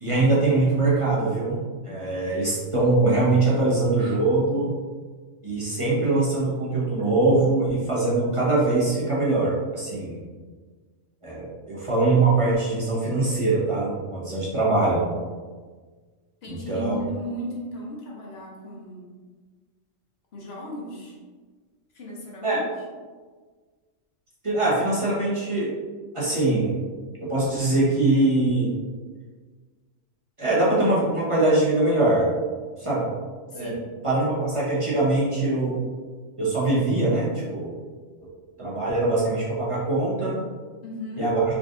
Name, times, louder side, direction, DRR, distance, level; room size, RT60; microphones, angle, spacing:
voice 1, 0.0-4.7 5.4-10.2 11.2-15.1 16.5-17.0 22.4-22.6 24.4-25.7 26.1-26.7 27.2-28.7 30.4-32.3 32.8-33.1 33.5-33.7 34.0-35.8 36.4-37.8 38.6-40.4 41.2-41.4, right 2 dB, 30° right, -7 dB, 0.8 m, -22 dB
voice 2, 16.4-19.2 20.3-21.2 21.9-22.6 33.5-34.0 40.8-41.3, equal, 60° left, -3 dB, 0.9 m, -36 dB
3.6 x 3.2 x 2.5 m, 1.5 s
omnidirectional pair, 1.3 m